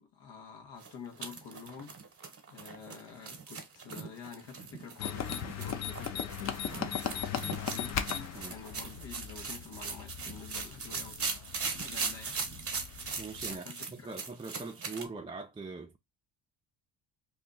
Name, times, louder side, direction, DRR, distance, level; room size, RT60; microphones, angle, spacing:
voice 1, 0.0-1.9 2.5-12.4 13.5-14.1, left 6 dB, 70° left, 1.3 m, -49 dB
sound 1, 0.8-15.1, right 5 dB, 30° right, 1.0 m, -40 dB
sound 2, 5.0-13.5, left 8 dB, 40° left, 0.6 m, -38 dB
voice 2, 13.2-13.7 14.0-16.0, right 3 dB, 15° right, 0.4 m, -42 dB
2.7 x 2.3 x 3.8 m
cardioid pair, 85°, 44 cm